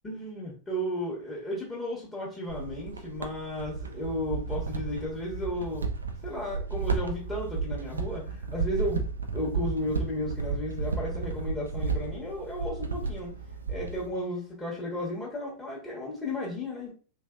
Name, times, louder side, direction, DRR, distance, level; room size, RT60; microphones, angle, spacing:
voice 1, 0.0-5.9 6.2-9.1 9.3-13.3 13.7-16.9, left 1 dB, 15° left, -6 dB, 1.2 m, -34 dB
sound 1, 2.5-14.1, right 4 dB, 75° right, 0.4 m, -33 dB
sound 2, 7.4-7.8 8.5-8.9 9.6-10.1 10.7-11.0 11.7-12.1 12.8-13.1 13.8-14.1, right 7 dB, 15° right, 0.7 m, -49 dB
3.3 x 2.7 x 2.4 m, 0.38 s
figure-of-eight pair, 90°, 0 cm